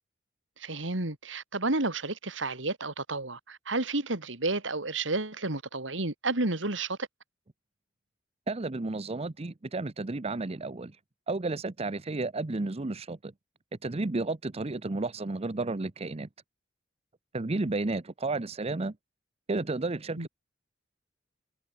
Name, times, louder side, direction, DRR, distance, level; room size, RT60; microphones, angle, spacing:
voice 1, 0.6-7.1 20.2-20.3, right 2 dB, 75° right, 2.9 m, -31 dB
voice 2, 8.5-11.0 11.3-13.3 13.8-16.3 17.3-19.0 19.5-20.3, right 2 dB, 35° right, 0.7 m, -32 dB
head